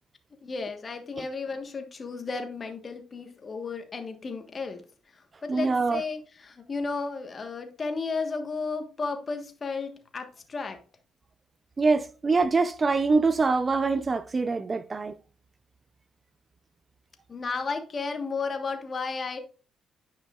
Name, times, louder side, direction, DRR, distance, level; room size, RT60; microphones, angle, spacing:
voice 1, 0.4-4.8 5.4-10.8 17.3-19.4, left 4 dB, 40° left, 1.3 m, -33 dB
voice 2, 5.5-6.0 11.8-15.1, right 4 dB, 30° right, 0.5 m, -24 dB
9.9 x 5.3 x 2.4 m
cardioid pair, 90°, 0 cm